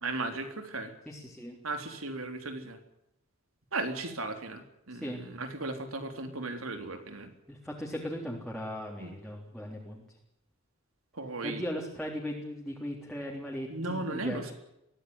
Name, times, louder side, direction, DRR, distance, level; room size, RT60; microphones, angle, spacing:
voice 1, 0.0-0.9 1.6-2.8 3.7-7.3 9.0-9.1 11.1-11.6 13.7-14.5, right 2 dB, 85° right, 7 dB, 3.7 m, -36 dB
voice 2, 1.1-1.6 4.9-5.2 7.5-10.0 11.4-14.4, equal, 5° left, -2 dB, 3.7 m, -38 dB
23.0 x 16.5 x 9.8 m, 0.83 s
head